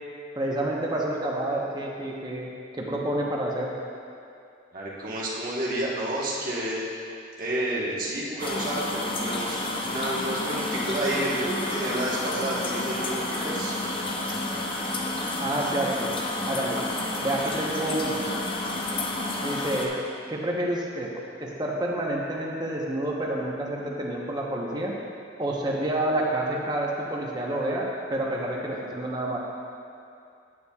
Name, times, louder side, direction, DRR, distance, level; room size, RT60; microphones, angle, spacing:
voice 1, 0.3-3.7 15.4-16.1 16.5-16.8 17.2-18.3 19.4-20.0 20.3-21.1 21.4-24.9 25.4-27.8 28.1-29.4, right 1 dB, 20° right, -3 dB, 0.9 m, -28 dB
voice 2, 4.7-6.8 7.4-13.8, right 1 dB, 45° right, -6 dB, 1.2 m, -30 dB
sound 1, 8.4-19.9, left 2 dB, 30° left, 0.6 m, -30 dB
9.7 x 8.5 x 2.3 m, 2.5 s
head